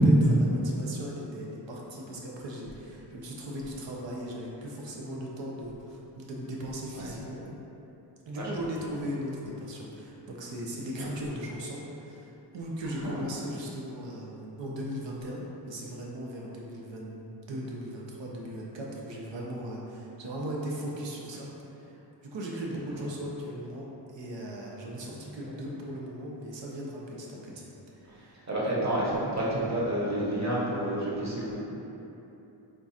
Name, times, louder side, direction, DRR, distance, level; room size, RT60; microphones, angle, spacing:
voice 1, 0.0-7.4 8.3-21.5 21.8-21.9 22.2-27.6 28.0-28.4, equal, 85° right, -3 dB, 0.7 m, -38 dB
voice 2, 28.5-29.0 29.3-31.6, right 1 dB, 40° right, -6 dB, 0.9 m, -29 dB
3.7 x 2.4 x 4.1 m, 3.0 s
wide cardioid pair, 95°, 44 cm